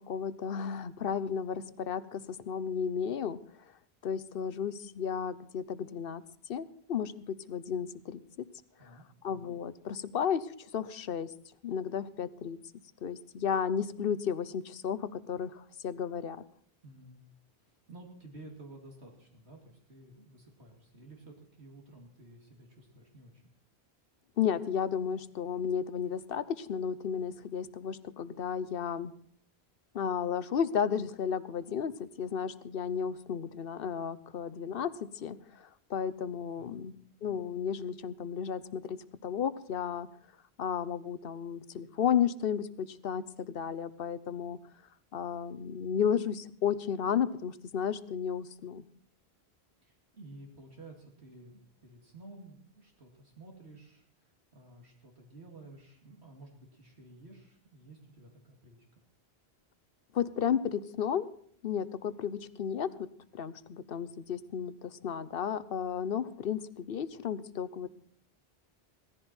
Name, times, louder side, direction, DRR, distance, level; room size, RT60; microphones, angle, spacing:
voice 1, 0.0-3.4 4.0-6.2 6.5-8.5 8.8-8.9 9.2-11.3 11.6-12.6 13.0-16.4 24.4-29.1 29.9-36.9 37.2-40.1 40.6-44.6 45.1-48.8 60.1-61.3 61.6-63.1 63.3-67.9, left 8 dB, 60° left, 15 dB, 0.9 m, -33 dB
voice 2, 8.8-9.1 16.8-17.2 17.7-23.4 36.6-36.8 49.8-58.8, right 2 dB, 80° right, 0 dB, 2.9 m, -52 dB
17.5 x 14.5 x 4.4 m, 0.62 s
omnidirectional pair, 1.1 m